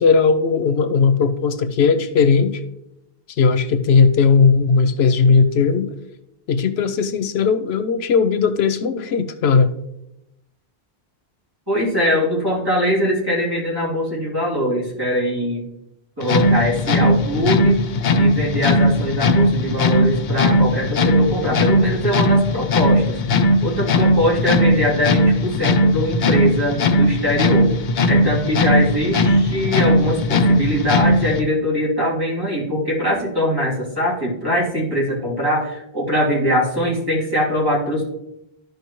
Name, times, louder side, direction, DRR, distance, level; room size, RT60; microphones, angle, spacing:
voice 1, 0.0-2.6 3.4-5.9 6.5-9.7, left 5 dB, 85° left, 12 dB, 0.9 m, -17 dB
voice 2, 11.7-15.6 16.2-17.8 18.2-23.2 23.6-27.7 28.1-38.0, equal, 20° right, -7 dB, 3.0 m, -22 dB
sound 1, 16.2-31.4, left 1 dB, 55° left, 0.7 m, -18 dB
13.0 x 5.1 x 3.0 m, 0.85 s
omnidirectional pair, 1.0 m